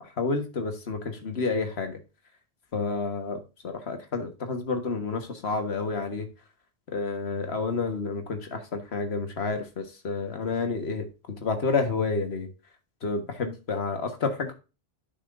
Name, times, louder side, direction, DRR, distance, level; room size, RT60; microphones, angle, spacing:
voice 1, 0.2-2.0 2.7-6.3 6.9-12.5 13.0-14.5, left 4 dB, 85° left, 6 dB, 1.6 m, -30 dB
10.0 x 5.9 x 2.5 m, 0.30 s
omnidirectional pair, 1.0 m